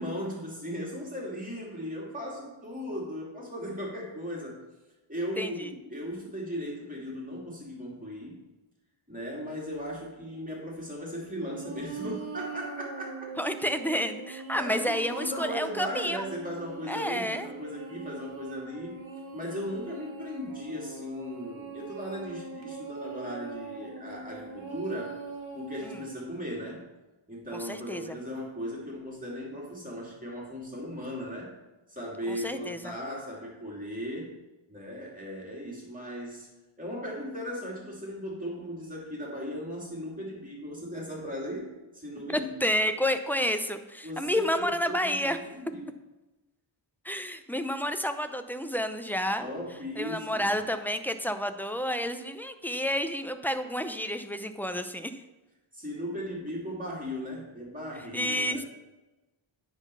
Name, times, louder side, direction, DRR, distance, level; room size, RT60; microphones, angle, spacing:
voice 1, 0.0-4.6 5.1-8.4 9.1-13.3 14.6-19.0 19.3-25.2 25.5-26.9 27.3-31.5 31.9-34.3 34.7-36.5 36.8-42.5 44.0-45.8 49.4-50.5 55.7-58.7, equal, 15° right, -4 dB, 2.8 m, -37 dB
voice 2, 5.4-5.7 13.4-16.2 16.9-17.5 25.8-26.0 27.5-28.2 32.3-33.0 42.3-45.4 47.0-49.5 50.0-55.2 58.1-58.6, equal, 5° left, 9 dB, 0.5 m, -30 dB
sound 1, 11.4-26.1, right 3 dB, 70° right, 1.6 m, -42 dB
9.6 x 4.0 x 5.6 m, 1.1 s
wide cardioid pair, 60°, 49 cm